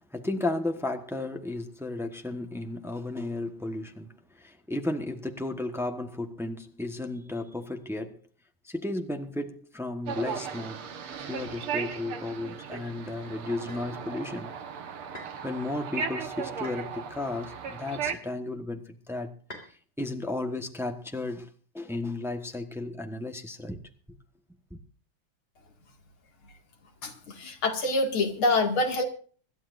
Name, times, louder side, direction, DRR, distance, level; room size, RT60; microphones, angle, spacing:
voice 1, 0.0-8.2 8.6-10.9 11.2-14.5 15.4-19.3 19.7-23.8 24.7-24.8, left 2 dB, ahead, 0.7 m, -34 dB
sound 1, 10.1-18.1, right 6 dB, 75° right, 2.2 m, -36 dB
sound 2, 13.7-13.9 15.1-15.4 16.6-16.8 18.1-18.4 19.5-19.7, left 1 dB, 25° left, 4.9 m, -43 dB
voice 2, 27.0-29.0, left 2 dB, 70° left, 3.1 m, -26 dB
26.0 x 12.0 x 2.6 m
omnidirectional pair, 2.4 m